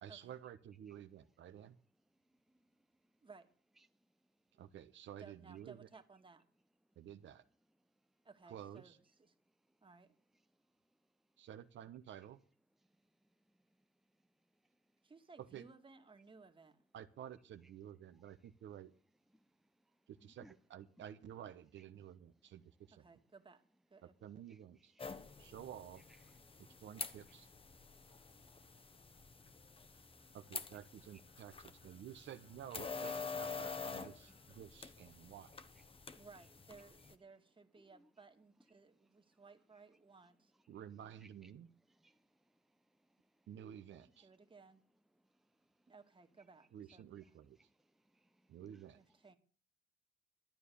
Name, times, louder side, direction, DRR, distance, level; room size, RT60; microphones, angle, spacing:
voice 1, 0.0-1.7 4.5-5.9 7.0-7.4 8.5-9.0 11.4-12.4 15.4-15.7 16.9-18.9 20.1-23.0 24.0-24.9 25.4-26.0 26.8-27.5 30.3-35.6 40.7-41.7 43.5-44.3 46.7-47.6 48.5-49.0, right 10 dB, 70° right, 1.1 m, -52 dB
voice 2, 5.2-6.4 8.2-9.3 9.8-10.2 15.0-16.8 22.9-23.6 23.9-24.1 36.2-40.5 44.2-44.8 45.9-47.2 48.7-49.4, right 4 dB, 25° right, 1.9 m, -60 dB
voice 3, 20.2-20.5 24.5-24.6 24.9-25.2 33.0-33.2 37.9-38.1 41.2-41.5 41.9-42.2 48.1-48.3, right 1 dB, ahead, 0.6 m, -64 dB
sound 1, 25.0-37.1, left 4 dB, 25° left, 1.2 m, -48 dB
sound 2, 28.1-34.6, left 3 dB, 75° left, 4.6 m, -77 dB
12.0 x 9.6 x 6.9 m
cardioid pair, 90°, 20 cm